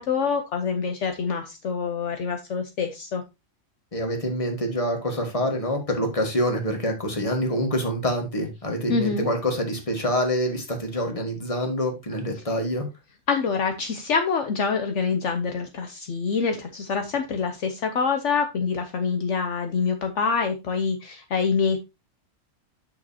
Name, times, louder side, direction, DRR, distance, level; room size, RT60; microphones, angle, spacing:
voice 1, 0.0-3.2 8.9-9.3 13.3-21.8, left 5 dB, 65° left, 6 dB, 1.1 m, -26 dB
voice 2, 3.9-12.9, equal, 25° left, 3 dB, 1.8 m, -26 dB
8.4 x 6.6 x 2.8 m, 0.24 s
omnidirectional pair, 1.4 m